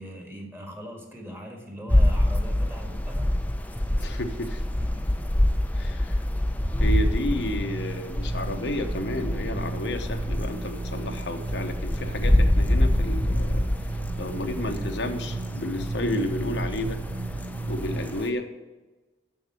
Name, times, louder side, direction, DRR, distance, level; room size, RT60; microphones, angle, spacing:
voice 1, 0.0-3.3 4.8-5.3, equal, 15° right, 2 dB, 1.7 m, -40 dB
sound 1, 1.9-18.3, left 1 dB, 10° left, 0.6 m, -26 dB
voice 2, 4.0-4.6 5.7-6.3 6.8-17.0 17.6-18.5, left 1 dB, 85° left, 5 dB, 1.0 m, -32 dB
sound 2, 7.2-18.1, right 2 dB, 85° right, 0.8 m, -34 dB
7.2 x 6.4 x 7.4 m, 1.2 s
head